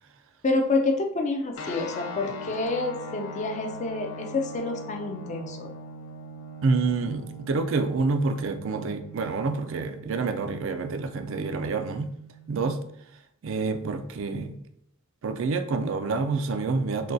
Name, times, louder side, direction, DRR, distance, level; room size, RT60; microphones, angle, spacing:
voice 1, 0.4-5.7, left 2 dB, 35° left, 3 dB, 0.4 m, -28 dB
sound 1, 1.5-12.7, left 1 dB, 85° left, 0.6 m, -41 dB
voice 2, 6.6-12.1 12.5-12.8 13.4-14.6 15.2-17.1, right 4 dB, 65° right, 8 dB, 0.4 m, -27 dB
6.3 x 2.3 x 2.6 m, 0.72 s
head